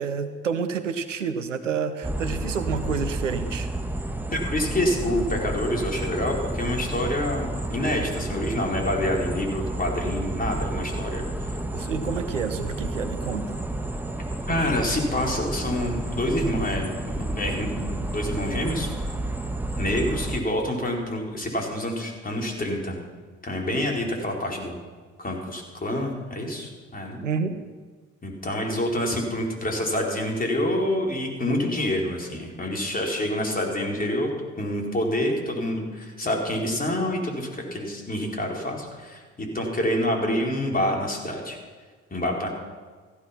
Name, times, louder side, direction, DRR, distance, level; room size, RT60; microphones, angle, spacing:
voice 1, 0.0-3.7 11.7-13.6 27.2-27.6, right 6 dB, 85° right, 10 dB, 0.8 m, -29 dB
sound 1, 2.0-20.4, right 1 dB, 5° right, 1.3 m, -31 dB
voice 2, 4.3-11.3 14.5-18.9 19.8-23.0 23.4-24.8 25.2-27.2 28.2-34.3 34.6-41.6 42.1-42.5, left 1 dB, 25° left, 0 dB, 4.4 m, -27 dB
15.0 x 12.5 x 5.9 m, 1.5 s
figure-of-eight pair, 50°, 37 cm